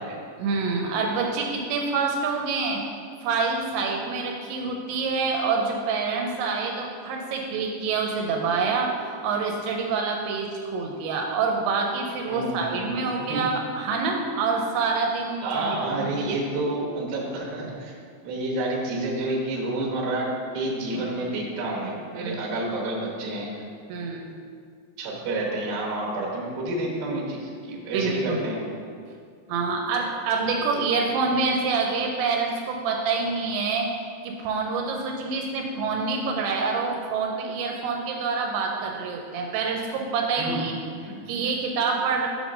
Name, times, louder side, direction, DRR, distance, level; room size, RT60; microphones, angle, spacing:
voice 1, 0.4-2.8 3.2-16.4 20.9-21.3 22.1-22.4 23.9-24.3 27.9-28.4 29.5-33.9 34.2-40.7 41.3-42.3, right 4 dB, 85° right, 1 dB, 2.9 m, -27 dB
voice 2, 12.3-13.4 15.4-18.0 18.2-23.5 25.0-28.7 40.4-40.6 40.9-41.5, right 2 dB, 65° right, -2 dB, 2.7 m, -29 dB
7.5 x 3.7 x 6.1 m, 2.2 s
omnidirectional pair, 5.2 m